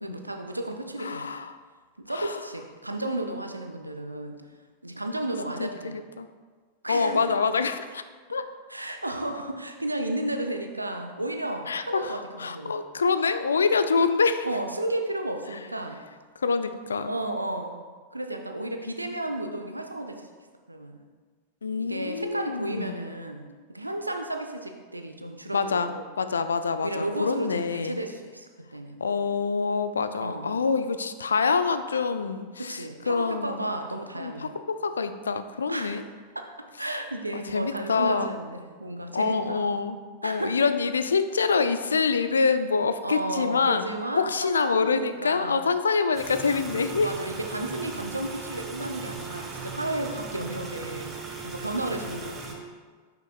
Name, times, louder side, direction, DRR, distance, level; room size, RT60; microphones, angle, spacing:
voice 1, 0.0-1.3 2.0-4.4 4.8-6.0 6.8-7.2 8.7-12.8 14.4-16.0 17.0-17.8 18.1-20.3 20.7-21.0 21.8-26.0 26.8-29.0 30.2-30.5 32.6-34.6 35.7-36.0 36.8-39.6 40.2-40.6 43.0-45.6 47.0-51.1 51.4-52.6, right 1 dB, 85° right, 5 dB, 0.6 m, -33 dB
voice 2, 1.0-1.5 2.1-2.4 5.6-6.3 6.9-8.0 8.3-8.4 11.7-14.5 15.5-15.6 16.4-17.1 21.6-23.1 25.5-28.0 29.0-33.6 34.1-36.0 37.3-38.4 39.1-40.0 40.2-47.1, left 5 dB, 70° left, 10 dB, 0.3 m, -26 dB
sound 1, 46.2-52.6, right 4 dB, 25° right, 1.0 m, -38 dB
8.9 x 5.8 x 2.2 m, 1.5 s
figure-of-eight pair, 90°, 0 cm